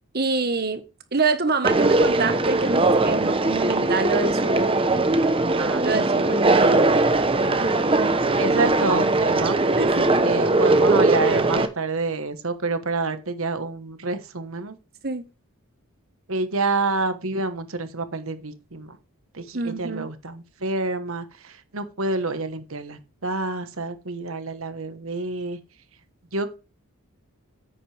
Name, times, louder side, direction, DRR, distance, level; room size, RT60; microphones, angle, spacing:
voice 1, 0.1-0.8 1.1-4.8 5.8-6.8 9.7-10.1 15.0-15.2 19.5-20.1, right 3 dB, 45° right, 1.4 m, -26 dB
Conversation, 1.6-11.7, right 2 dB, 25° right, 0.9 m, -20 dB
voice 2, 5.6-5.9 8.4-9.6 10.2-14.7 16.3-18.9 19.4-21.2 21.7-25.6 26.3-26.6, right 3 dB, 65° right, 1.3 m, -28 dB
9.9 x 8.6 x 3.4 m
head